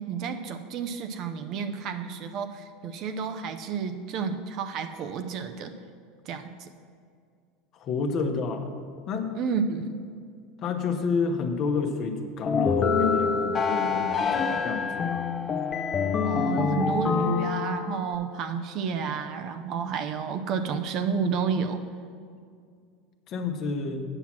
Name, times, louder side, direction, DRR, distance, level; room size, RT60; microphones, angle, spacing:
voice 1, 0.0-5.7 6.3-6.7 9.4-10.1 16.2-21.8, right 6 dB, 50° right, 8 dB, 0.6 m, -31 dB
voice 2, 7.7-8.7 9.1-9.3 10.6-15.3 23.3-24.0, left 5 dB, 45° left, 5 dB, 0.9 m, -29 dB
sound 1, 12.5-18.2, left 5 dB, 30° left, 0.6 m, -26 dB
9.0 x 5.9 x 5.9 m, 2.2 s
supercardioid pair, 105°, 0 cm